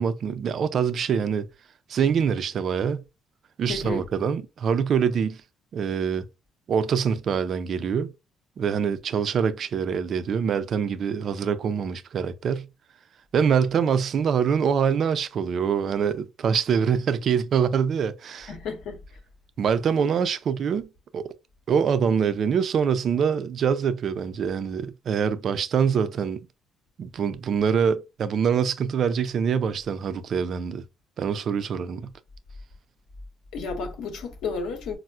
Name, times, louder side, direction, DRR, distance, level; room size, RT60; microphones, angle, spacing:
voice 1, 0.0-1.5 1.9-3.0 3.6-5.4 5.7-6.2 6.7-8.1 8.6-12.7 13.3-18.5 19.6-20.9 21.1-21.3 21.7-26.4 27.0-30.8 31.2-32.1, right 7 dB, 55° right, 0.3 m, -24 dB
voice 2, 3.7-4.1 18.5-19.0 33.5-35.0, left 4 dB, 80° left, 0.9 m, -32 dB
4.2 x 2.0 x 2.3 m
cardioid pair, 95°, 0 cm